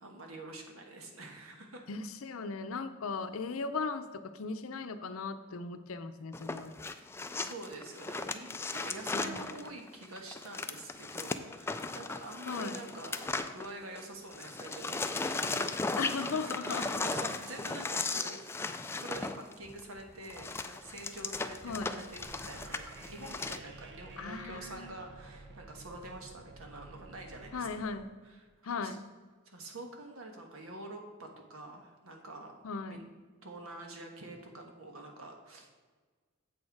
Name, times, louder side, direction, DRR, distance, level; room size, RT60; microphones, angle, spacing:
voice 1, 0.0-1.8 7.3-18.4 18.8-27.9 28.2-29.0 29.4-32.5 32.9-33.0 33.4-35.8, right 2 dB, 80° right, 3 dB, 1.4 m, -47 dB
voice 2, 1.9-6.7 9.1-9.5 12.5-12.8 16.0-16.9 21.6-21.9 24.2-25.0 27.5-28.1 28.6-29.0 32.6-33.0, left 4 dB, 75° left, 9 dB, 0.6 m, -37 dB
sound 1, 6.3-14.1 14.3-23.6, left 3 dB, 10° left, 0.3 m, -37 dB
sound 2, 22.2-27.9, right 3 dB, 55° right, 0.9 m, -51 dB
7.8 x 6.4 x 4.7 m, 1.5 s
head